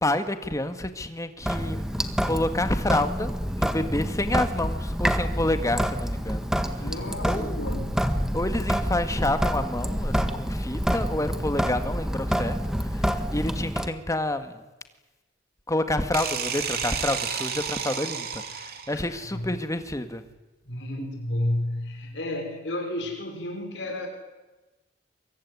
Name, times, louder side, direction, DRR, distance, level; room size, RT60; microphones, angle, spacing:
voice 1, 0.0-1.8 2.2-6.8 7.2-7.6 8.3-14.6 15.7-20.2, left 1 dB, 20° left, 9 dB, 1.9 m, -29 dB
Sink (filling or washing) / Drip, 1.4-13.9, equal, 5° right, 1.7 m, -27 dB
voice 2, 6.8-8.1 18.9-19.5 20.7-24.1, left 1 dB, 75° left, 3 dB, 5.5 m, -32 dB
sound 1, 16.1-19.1, right 7 dB, 60° right, 3.3 m, -31 dB
23.5 x 23.0 x 9.8 m, 1.1 s
head